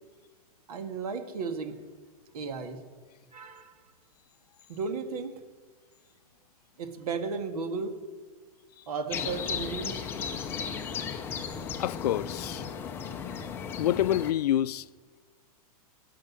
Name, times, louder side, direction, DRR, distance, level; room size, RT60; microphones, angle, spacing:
voice 1, 0.7-1.8 2.3-2.8 3.3-3.7 4.7-5.4 6.8-8.0 8.9-10.1, right 4 dB, 75° right, 2.0 m, -34 dB
sound 1, 9.1-14.3, left 6 dB, 10° left, 0.5 m, -35 dB
voice 2, 11.8-12.6 13.8-14.8, left 12 dB, 90° left, 0.4 m, -27 dB
17.5 x 6.6 x 9.7 m
supercardioid pair, 175°, 19 cm